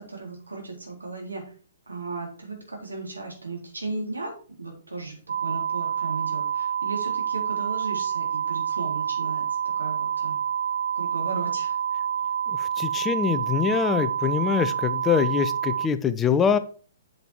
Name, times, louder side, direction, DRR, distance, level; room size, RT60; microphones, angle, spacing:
voice 1, 0.0-1.4 1.9-10.4 10.9-11.8, right 3 dB, 80° right, 0 dB, 4.0 m, -36 dB
sound 1, 5.3-15.9, right 8 dB, 65° right, 0.5 m, -28 dB
voice 2, 12.8-16.6, left 7 dB, 15° left, 12 dB, 0.7 m, -24 dB
7.9 x 7.0 x 4.6 m, 0.41 s
figure-of-eight pair, 120°, 0 cm